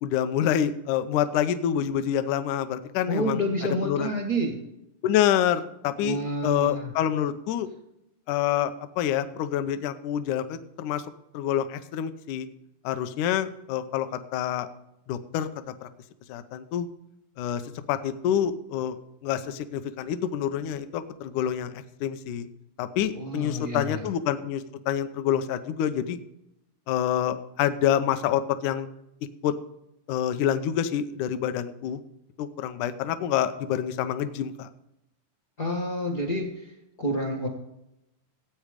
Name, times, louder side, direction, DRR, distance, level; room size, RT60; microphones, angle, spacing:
voice 1, 0.0-3.4 3.8-4.1 5.0-7.7 8.3-11.0 11.3-12.5 12.8-14.7 15.1-15.9 16.3-16.9 17.4-17.6 17.9-19.0 19.2-22.5 22.8-26.2 26.9-28.9 29.4-29.5 30.1-32.0 32.4-34.7, left 10 dB, 75° left, 10 dB, 2.0 m, -27 dB
voice 2, 3.1-4.6 6.0-6.9 23.2-24.0 35.6-36.7 37.0-37.5, equal, 45° left, 1 dB, 1.1 m, -28 dB
15.0 x 8.7 x 5.1 m, 0.84 s
omnidirectional pair, 4.1 m